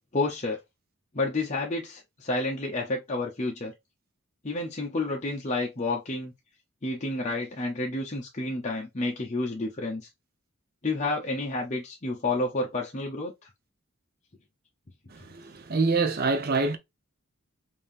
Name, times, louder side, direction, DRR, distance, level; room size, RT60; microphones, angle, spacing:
voice 1, 0.1-0.6 1.1-3.7 4.4-6.3 6.8-10.0 10.8-13.5, left 2 dB, 30° left, 0.7 m, -30 dB
voice 2, 15.1-16.8, right 3 dB, 45° right, 0.8 m, -26 dB
5.5 x 2.7 x 2.5 m
head